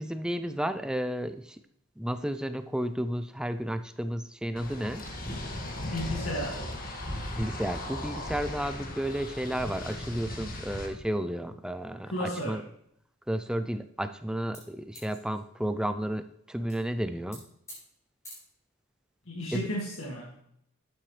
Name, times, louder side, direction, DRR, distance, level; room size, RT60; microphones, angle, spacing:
voice 1, 0.0-1.6 2.0-5.0 7.4-12.6 13.3-17.4 19.5-19.7, equal, 5° right, 10 dB, 0.4 m, -32 dB
sound 1, 4.6-10.9, left 1 dB, 40° left, 1.8 m, -37 dB
voice 2, 5.9-6.6 12.1-12.6 19.3-20.3, equal, 65° left, -3 dB, 2.1 m, -33 dB
sound 2, 14.5-15.9 16.7-16.8 17.1-17.4 17.7-17.8 18.2-18.3, equal, 15° left, 4.7 m, -46 dB
12.0 x 8.8 x 3.2 m, 0.73 s
head